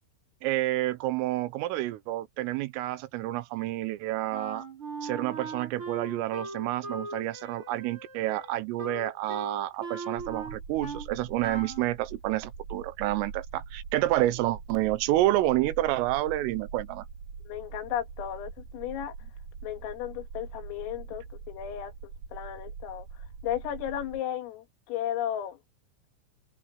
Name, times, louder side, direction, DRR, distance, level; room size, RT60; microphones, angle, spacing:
voice 1, 0.4-4.7 5.0-17.1, right 16 dB, 85° right, 3.6 m, -29 dB
Wind instrument woodwind instrument, 4.3-11.1 11.4-11.9, right 3 dB, 25° right, 6.1 m, -39 dB
sound 1, 10.2-24.2, right 5 dB, 45° right, 5.2 m, -43 dB
voice 2, 17.5-19.2 19.6-25.6, left 11 dB, 90° left, 4.7 m, -35 dB
omnidirectional pair, 5.8 m